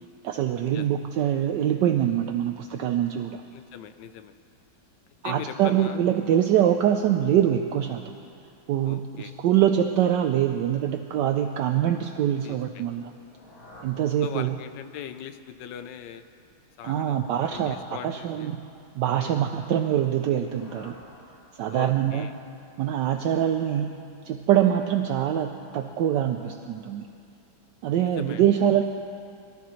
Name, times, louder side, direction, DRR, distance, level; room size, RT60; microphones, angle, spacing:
voice 1, 0.2-3.4 5.2-8.1 8.7-13.1 13.8-14.6 16.8-17.8 18.0-18.6 19.0-21.0 21.5-22.3 22.8-24.0 24.2-27.1 27.8-28.8, right 10 dB, 75° right, 5 dB, 1.1 m, -24 dB
voice 2, 3.5-4.3 5.2-6.0 6.7-7.0 8.8-9.3 12.4-12.8 14.2-16.2 16.8-18.5 19.2-19.4 21.7-22.3 27.9-28.4, left 10 dB, 70° left, 10 dB, 1.2 m, -40 dB
sound 1, 13.0-14.8 16.8-18.6 20.1-21.9, left 1 dB, 90° left, 2.8 m, -51 dB
22.5 x 13.0 x 3.1 m, 2.5 s
omnidirectional pair, 2.2 m